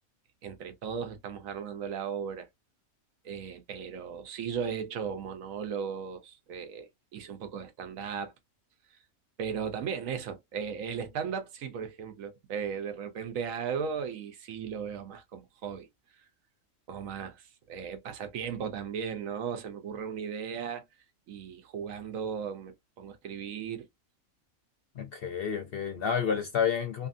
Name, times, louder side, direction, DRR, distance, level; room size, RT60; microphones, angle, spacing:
voice 1, 0.4-2.5 3.2-8.3 9.4-15.9 16.2-16.3 16.9-20.8 21.3-23.9, right 7 dB, 75° right, 1.1 m, -36 dB
voice 2, 25.0-27.1, left 7 dB, 60° left, 0.7 m, -30 dB
2.6 x 2.6 x 2.5 m
omnidirectional pair, 1.4 m